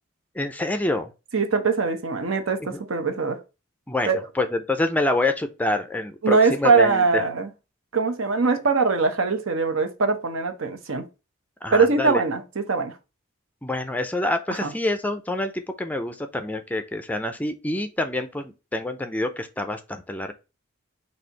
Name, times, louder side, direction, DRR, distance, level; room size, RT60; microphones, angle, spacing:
voice 1, 0.4-1.1 2.7-2.8 3.9-4.1 4.4-7.2 11.6-12.2 13.6-20.3, left 2 dB, 10° left, 0.4 m, -26 dB
voice 2, 1.3-3.4 4.1-4.2 6.2-7.5 7.9-11.1 11.7-12.9 14.5-14.7, right 4 dB, 75° right, 0.8 m, -22 dB
4.3 x 2.7 x 4.4 m
head